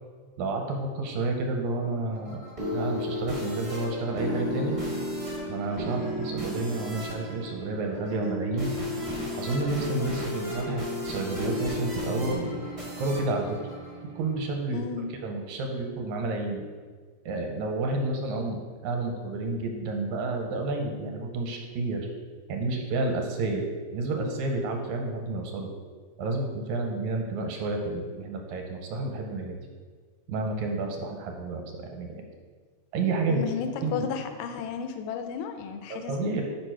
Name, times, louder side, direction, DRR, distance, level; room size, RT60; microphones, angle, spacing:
voice 1, 0.4-2.4 2.7-4.8 5.5-8.8 9.4-12.6 13.0-13.6 14.2-14.8 15.2-16.6 17.3-22.0 22.5-23.6 23.9-25.7 26.2-29.6 30.3-32.2 32.9-33.4 33.8-34.1 35.9-36.4, right 3 dB, 80° right, 2 dB, 2.0 m, -30 dB
sound 1, 1.8-14.5, left 1 dB, 45° right, 0.4 m, -34 dB
voice 2, 14.7-15.2 33.3-36.4, left 6 dB, 80° left, 6 dB, 1.9 m, -33 dB
5.2 x 4.5 x 4.5 m, 1.5 s
omnidirectional pair, 3.4 m